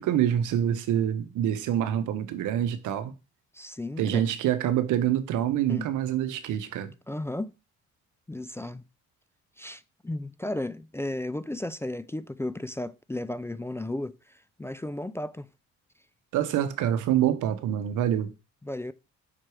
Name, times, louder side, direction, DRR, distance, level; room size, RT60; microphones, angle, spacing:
voice 1, 0.0-3.1 4.0-6.9 16.3-18.3, right 10 dB, 85° right, 0.9 m, -26 dB
voice 2, 3.5-4.2 5.7-5.9 7.1-7.5 8.3-8.8 9.6-15.5 18.6-18.9, left 1 dB, 10° left, 0.4 m, -34 dB
5.9 x 4.6 x 4.7 m
cardioid pair, 90°, 30 cm